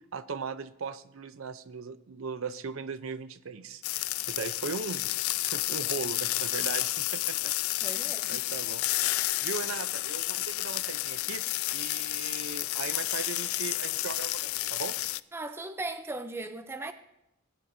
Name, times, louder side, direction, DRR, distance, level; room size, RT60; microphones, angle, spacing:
voice 1, 0.1-5.1 5.4-7.5 7.8-11.4 11.7-14.9, right 5 dB, 70° right, 0.6 m, -38 dB
sound 1, 3.8-15.2, left 18 dB, 75° left, 0.3 m, -31 dB
voice 2, 7.8-8.4 15.3-16.9, right 2 dB, 10° right, 0.5 m, -37 dB
19.0 x 9.6 x 2.7 m
head